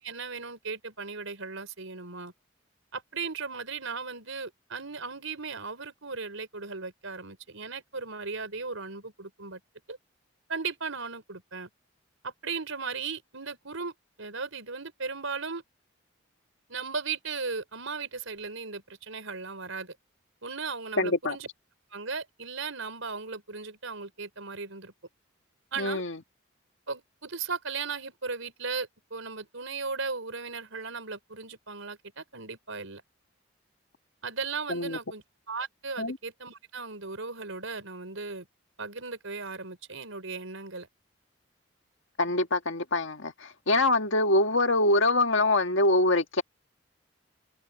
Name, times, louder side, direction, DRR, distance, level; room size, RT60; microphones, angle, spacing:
voice 1, 0.0-2.3 2.9-9.6 9.9-10.0 10.5-11.7 12.2-15.6 16.7-20.0 20.4-21.5 21.9-24.9 25.7-26.0 26.9-33.0 34.2-38.5 38.8-40.9, right 4 dB, 80° right, 4.4 m, -37 dB
voice 2, 21.0-21.4 25.8-26.2 34.7-35.0 36.0-36.2 42.2-46.4, left 2 dB, 70° left, 1.7 m, -24 dB
head